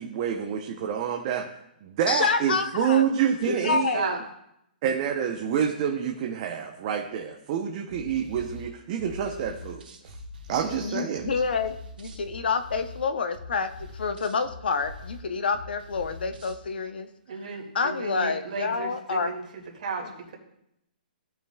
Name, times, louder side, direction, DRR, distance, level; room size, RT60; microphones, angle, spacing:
voice 1, 0.0-1.5 1.8-3.9 4.8-10.2 10.5-11.3, right 8 dB, 30° right, 3 dB, 0.7 m, -27 dB
voice 2, 2.1-3.1 3.5-4.2 10.8-17.1 17.7-19.3 20.0-20.1, left 5 dB, 75° left, 10 dB, 0.8 m, -28 dB
voice 3, 3.4-4.2 17.3-19.4 19.8-20.0, right 4 dB, 50° right, 0 dB, 2.1 m, -33 dB
sound 1, 7.9-16.6, left 1 dB, 75° right, 2.0 m, -44 dB
16.0 x 5.5 x 2.3 m, 0.79 s
hypercardioid pair, 160°, 5 cm